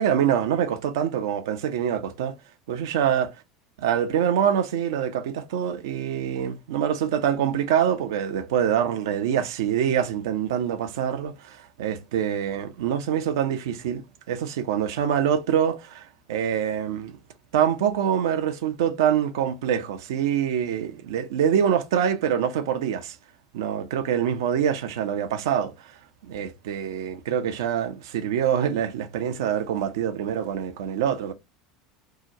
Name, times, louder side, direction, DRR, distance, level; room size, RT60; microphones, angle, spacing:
voice 1, 0.0-2.4 2.7-3.3 3.8-17.1 17.5-23.2 23.5-26.0 26.2-31.3, right 9 dB, 75° right, 0.5 m, -25 dB
2.7 x 2.1 x 3.6 m
hypercardioid pair, 80°, 2 cm